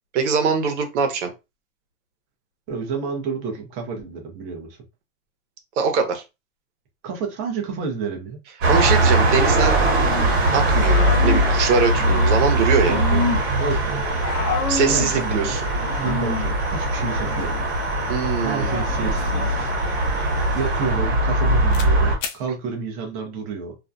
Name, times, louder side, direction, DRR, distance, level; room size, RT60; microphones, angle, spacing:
voice 1, 0.1-1.3 5.8-6.2 8.7-9.8 10.5-13.0 14.7-15.6 18.1-18.8, right 5 dB, 60° right, 0.8 m, -22 dB
voice 2, 2.7-4.7 7.0-8.4 12.8-13.2 13.6-14.0 14.8-15.6 16.0-17.5 18.4-20.2 20.5-23.8, right 5 dB, 25° right, 0.5 m, -30 dB
sound 1, 8.6-22.2, right 1 dB, 40° right, 1.0 m, -21 dB
Growling / Cricket, 10.0-20.9, left 4 dB, 40° left, 0.8 m, -31 dB
sound 2, 19.0-21.4 21.7-21.9 22.2-22.4, left 3 dB, 70° left, 0.7 m, -35 dB
2.4 x 2.1 x 2.5 m
supercardioid pair, 155°, 39 cm